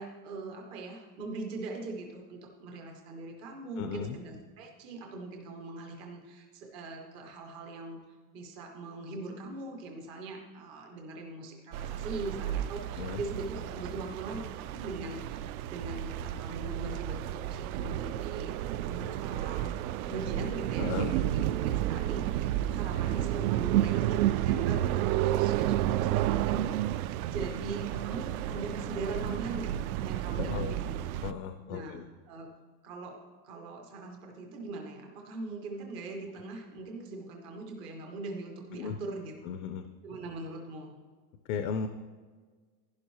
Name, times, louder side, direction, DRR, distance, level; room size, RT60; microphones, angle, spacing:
voice 1, 0.0-8.0 8.3-31.0 31.7-32.5 32.8-39.3 40.0-40.9, right 2 dB, 15° right, 1 dB, 0.4 m, -41 dB
voice 2, 3.8-4.2 13.0-13.2 20.8-21.1 30.4-30.8 31.2-32.0 38.7-39.0 39.5-39.8 41.5-41.9, left 7 dB, 60° left, 8 dB, 0.6 m, -35 dB
sound 1, 11.7-31.3, right 13 dB, 75° right, 0.5 m, -31 dB
11.5 x 10.0 x 3.0 m, 1.5 s
supercardioid pair, 175°, 44 cm